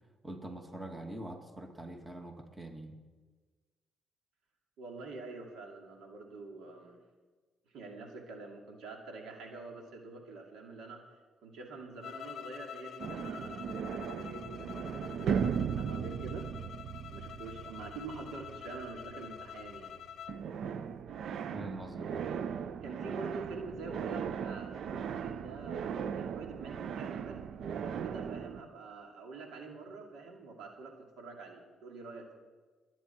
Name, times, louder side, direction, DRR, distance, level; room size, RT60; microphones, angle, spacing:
voice 1, 0.2-3.0 21.5-22.3, right 1 dB, 20° right, 3 dB, 2.1 m, -44 dB
voice 2, 4.8-7.0 7.7-11.0 11.4-15.4 15.6-16.5 17.1-19.9 22.8-27.4 27.8-32.3, right 3 dB, 85° right, 1 dB, 2.5 m, -46 dB
sound 1, 12.0-20.4, left 9 dB, 65° left, 0.7 m, -47 dB
sound 2, 13.0-20.0 20.3-28.6, right 7 dB, 70° right, 0.6 m, -37 dB
22.5 x 9.3 x 4.5 m, 1.4 s
cardioid pair, 90°, 0 cm